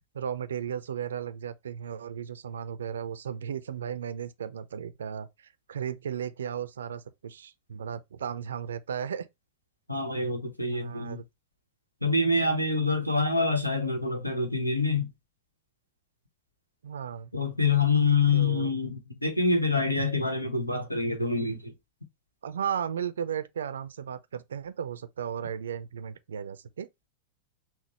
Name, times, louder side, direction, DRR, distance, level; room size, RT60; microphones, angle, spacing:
voice 1, 0.1-5.3 5.7-9.3 10.7-11.2 16.8-17.3 18.3-18.7 22.4-26.9, right 8 dB, 65° right, 0.4 m, -35 dB
voice 2, 9.9-11.2 12.0-15.1 17.3-21.7, left 3 dB, 85° left, 0.9 m, -26 dB
5.9 x 2.0 x 2.9 m
figure-of-eight pair, 90°, 0 cm